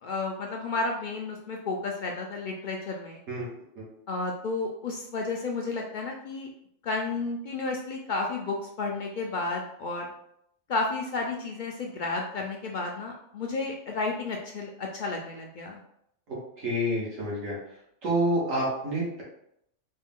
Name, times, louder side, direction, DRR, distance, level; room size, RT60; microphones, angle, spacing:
voice 1, 0.0-3.2 4.1-6.5 6.8-10.1 10.7-15.8, left 3 dB, 75° left, 0 dB, 0.4 m, -32 dB
voice 2, 16.3-17.6 18.0-19.2, right 1 dB, 75° right, -6 dB, 1.8 m, -28 dB
4.3 x 2.3 x 3.6 m, 0.74 s
omnidirectional pair, 1.4 m